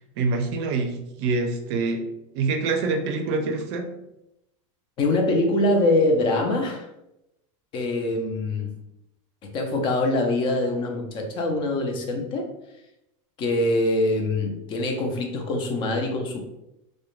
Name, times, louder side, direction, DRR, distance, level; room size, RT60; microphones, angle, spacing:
voice 1, 0.2-2.1 2.3-3.9, right 3 dB, 55° right, 4 dB, 0.5 m, -25 dB
voice 2, 5.0-6.9 7.7-8.8 9.4-12.5 13.4-16.4, left 2 dB, 30° left, 3 dB, 0.4 m, -24 dB
2.3 x 2.1 x 2.9 m, 0.87 s
supercardioid pair, 150°, 17 cm